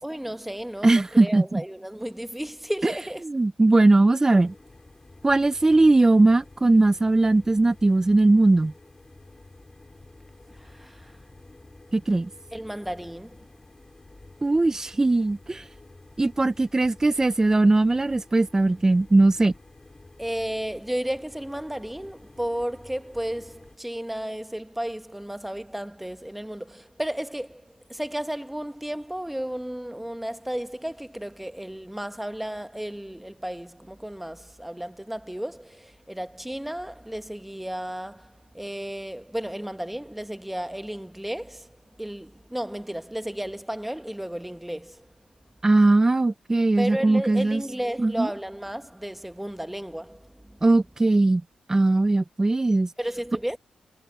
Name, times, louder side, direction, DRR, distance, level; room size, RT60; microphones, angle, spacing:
voice 1, 0.0-3.2 10.5-11.2 12.5-13.4 20.2-45.1 46.8-50.6 53.0-53.6, right 1 dB, 5° right, 1.5 m, -33 dB
voice 2, 0.8-1.6 2.8-2.9 3.2-4.5 5.2-8.7 11.9-12.3 14.4-15.7 16.2-19.5 45.6-47.6 48.0-48.3 50.6-51.4 51.7-52.9, right 2 dB, 25° right, 0.8 m, -19 dB
sound 1, 4.4-23.8, left 2 dB, 20° left, 5.6 m, -50 dB
cardioid pair, 60°, 2 cm